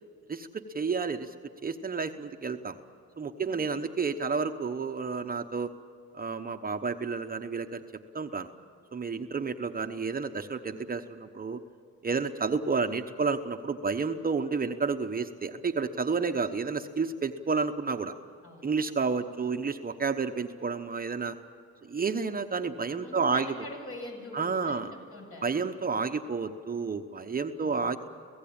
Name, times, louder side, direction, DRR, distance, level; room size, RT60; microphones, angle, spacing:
voice 1, 0.3-1.3 1.6-2.8 3.2-5.7 6.1-7.8 8.1-8.5 8.9-11.6 12.0-18.1 18.6-21.4 21.8-23.5 24.3-24.9 25.4-28.0, right 5 dB, 30° right, 6 dB, 1.0 m, -30 dB
voice 2, 3.5-3.8 18.4-18.9 22.9-25.5 27.6-28.0, left 1 dB, 50° left, 1 dB, 7.4 m, -44 dB
26.0 x 16.5 x 8.8 m, 2.4 s
cardioid pair, 90°, 30 cm